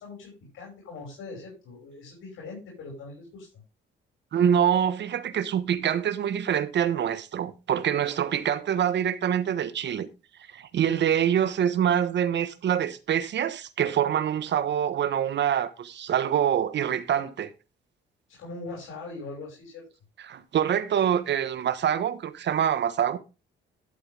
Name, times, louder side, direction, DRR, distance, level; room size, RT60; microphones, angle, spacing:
voice 1, 0.0-3.5 18.3-19.9, left 3 dB, 85° left, 5.4 m, -41 dB
voice 2, 4.3-10.1 10.5-17.5 20.2-23.2, right 9 dB, 65° right, 1.3 m, -25 dB
12.0 x 7.7 x 3.5 m
cardioid pair, 90°, 20 cm